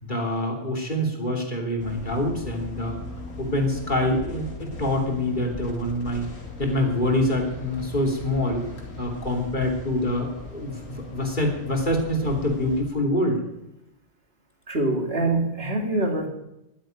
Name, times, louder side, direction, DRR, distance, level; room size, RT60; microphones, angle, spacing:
voice 1, 0.0-3.0 3.4-6.3 6.6-8.6 9.0-13.4, left 1 dB, 40° left, 0 dB, 3.2 m, -25 dB
sound 1, 1.8-12.8, left 2 dB, 85° left, 2.7 m, -39 dB
voice 2, 14.7-16.3, right 2 dB, 50° right, 2 dB, 2.6 m, -24 dB
12.0 x 10.0 x 9.2 m, 0.89 s
omnidirectional pair, 1.3 m